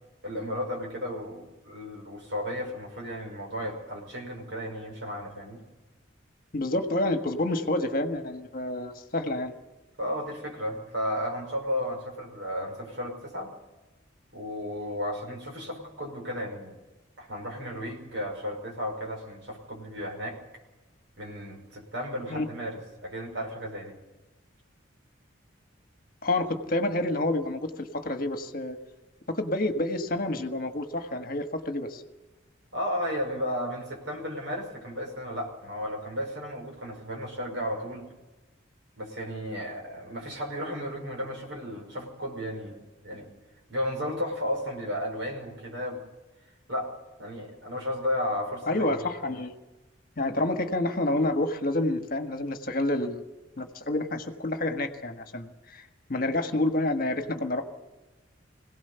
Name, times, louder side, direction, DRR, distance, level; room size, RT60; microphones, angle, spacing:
voice 1, 0.2-5.6 10.0-13.5 14.3-16.8 17.2-20.4 21.2-24.0 32.7-38.1 39.0-43.3 43.7-46.0 46.7-46.9 47.2-49.1, equal, 65° right, 2 dB, 5.4 m, -34 dB
voice 2, 6.5-9.5 22.3-22.5 26.2-28.8 29.3-32.0 48.7-49.5 50.2-53.2 53.6-57.6, left 1 dB, 45° left, 7 dB, 1.5 m, -28 dB
23.5 x 17.0 x 6.9 m, 1.1 s
head